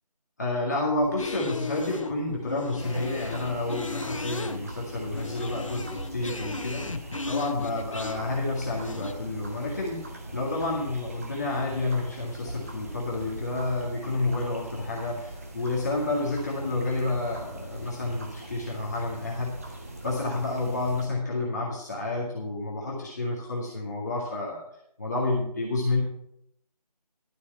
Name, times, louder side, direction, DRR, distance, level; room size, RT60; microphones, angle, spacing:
voice 1, 0.4-24.6 25.0-26.0, left 2 dB, 25° left, -4 dB, 2.0 m, -30 dB
sound 1, 1.0-9.1, left 3 dB, 50° left, 0.8 m, -36 dB
sound 2, 2.8-21.1, right 1 dB, 20° right, 1.4 m, -41 dB
12.0 x 8.2 x 5.5 m, 0.73 s
figure-of-eight pair, 165°, 21 cm